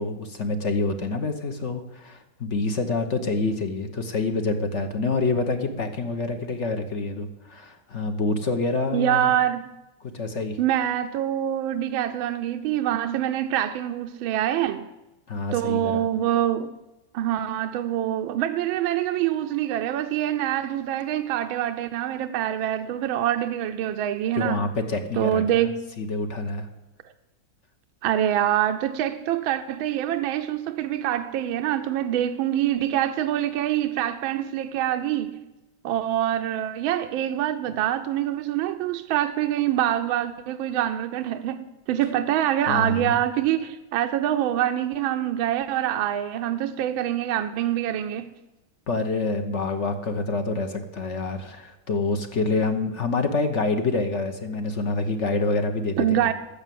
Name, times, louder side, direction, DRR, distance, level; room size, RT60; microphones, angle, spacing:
voice 1, 0.0-9.3 10.0-10.6 15.3-16.1 24.4-25.7 26.0-26.7 42.7-43.2 48.9-56.3, left 3 dB, 45° left, 1.0 m, -27 dB
voice 2, 8.9-9.7 10.6-14.9 15.5-16.7 17.1-24.7 25.2-25.8 28.0-35.4 35.8-48.3 56.0-56.3, right 11 dB, 80° right, 1.4 m, -25 dB
13.5 x 6.8 x 9.2 m
omnidirectional pair, 2.3 m